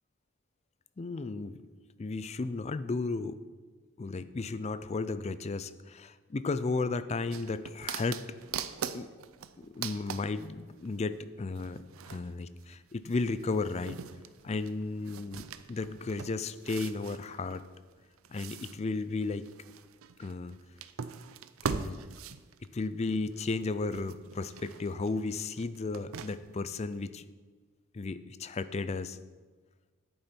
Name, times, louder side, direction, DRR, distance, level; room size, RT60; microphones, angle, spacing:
voice 1, 1.0-1.6 2.0-3.4 4.0-8.2 8.9-9.1 9.6-11.8 12.1-14.0 14.4-17.6 18.3-19.4 20.2-20.5 21.7-22.0 22.7-27.2 27.9-29.2, left 3 dB, 30° left, 13 dB, 0.4 m, -34 dB
sound 1, 7.3-11.0 11.6-23.6 23.9-26.6 27.0-27.1, right 6 dB, 70° right, 0.5 m, -42 dB
10.5 x 9.0 x 4.4 m, 1.4 s
head